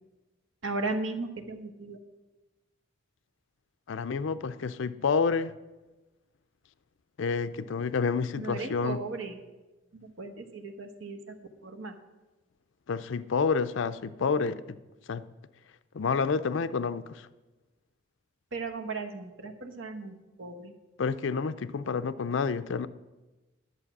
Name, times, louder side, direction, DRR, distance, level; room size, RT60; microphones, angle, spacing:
voice 1, 0.6-2.0 8.4-9.4 9.9-11.4 11.6-11.9 18.5-20.7, right 3 dB, 65° right, 5 dB, 1.1 m, -36 dB
voice 2, 3.9-5.5 7.2-9.0 12.9-14.8 15.1-15.2 15.9-17.3 21.0-22.9, left 5 dB, 65° left, 13 dB, 0.4 m, -29 dB
11.5 x 7.2 x 5.9 m, 1.1 s
head